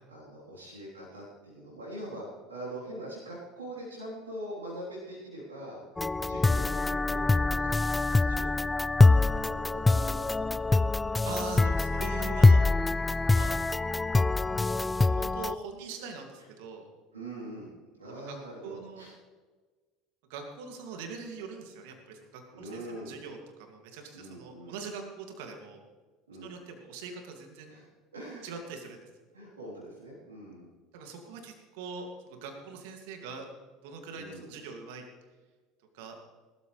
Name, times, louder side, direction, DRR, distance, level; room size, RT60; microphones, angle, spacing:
voice 1, 0.1-8.6 9.1-10.7 16.0-16.5 17.1-17.7 18.0-19.1 22.5-23.2 24.1-24.8 26.3-26.5 27.7-28.5 29.3-30.7 34.1-34.7, right 1 dB, 85° right, -7 dB, 3.6 m, -43 dB
sound 1, 6.0-15.5, left 3 dB, 15° left, 0.3 m, -24 dB
voice 2, 11.2-13.5 15.0-16.9 18.0-18.4 18.6-19.1 20.3-25.8 26.4-27.7 28.4-29.1 30.9-33.5 33.8-35.0 35.9-36.2, right 5 dB, 65° right, 3 dB, 2.4 m, -42 dB
19.0 x 13.0 x 3.3 m, 1.4 s
figure-of-eight pair, 70°, 0 cm